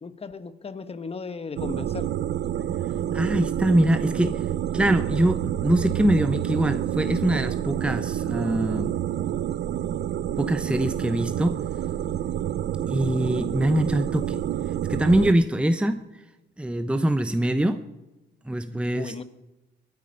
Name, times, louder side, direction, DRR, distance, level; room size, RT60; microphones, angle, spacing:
voice 1, 0.0-2.1 18.9-19.2, left 4 dB, 30° left, 1.2 m, -35 dB
sound 1, 1.6-15.3, right 11 dB, 60° right, 0.7 m, -28 dB
voice 2, 3.1-4.4 4.7-8.9 9.9-10.0 10.4-11.6 12.9-14.4 14.9-16.0 16.6-17.8 18.5-19.1, right 1 dB, 5° right, 0.8 m, -23 dB
22.0 x 9.7 x 5.4 m
cardioid pair, 90°, 20 cm